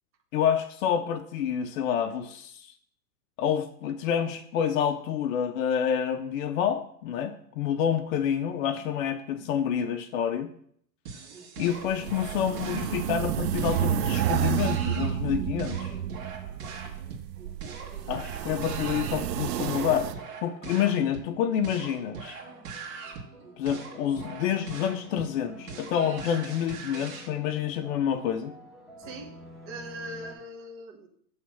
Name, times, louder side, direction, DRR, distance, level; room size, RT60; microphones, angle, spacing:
voice 1, 0.3-2.7 3.4-10.5 11.6-16.0 18.1-20.1 20.4-22.4 23.6-28.5, left 9 dB, 55° left, 7 dB, 0.6 m, -28 dB
sound 1, 11.0-27.3, right 5 dB, 55° right, 1.6 m, -42 dB
sound 2, 11.7-20.1, right 11 dB, 80° right, 0.6 m, -30 dB
sound 3, 22.4-30.3, left 1 dB, ahead, 0.3 m, -48 dB
voice 2, 29.0-29.3 29.7-31.1, right 1 dB, 25° right, 0 dB, 1.0 m, -41 dB
7.4 x 3.2 x 5.7 m, 0.67 s
hypercardioid pair, 120°, 49 cm